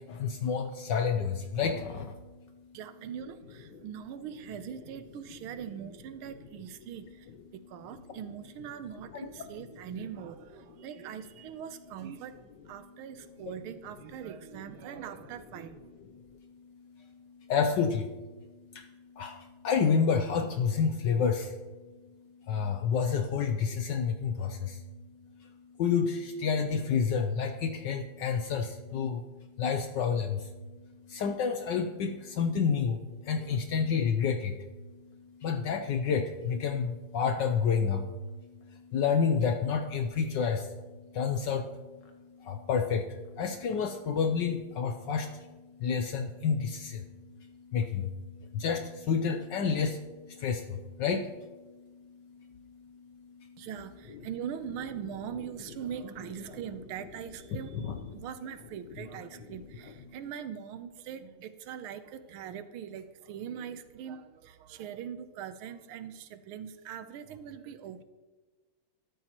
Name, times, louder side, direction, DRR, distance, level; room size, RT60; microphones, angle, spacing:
voice 1, 0.2-2.1 17.5-18.0 19.2-19.3 19.6-21.5 22.5-24.6 25.8-29.2 29.6-30.4 31.1-33.0 33.3-34.5 35.4-38.0 38.9-40.6 41.2-41.6 42.5-43.0 43.4-45.3 45.8-46.9 47.7-48.0 48.5-48.8 49.1-50.0 50.4-50.6 51.0-51.2 57.7-57.9, left 6 dB, 70° left, 7 dB, 1.1 m, -28 dB
voice 2, 2.7-15.9 53.6-68.0, right 8 dB, 75° right, 11 dB, 1.6 m, -42 dB
13.0 x 13.0 x 3.0 m, 1.2 s
omnidirectional pair, 2.4 m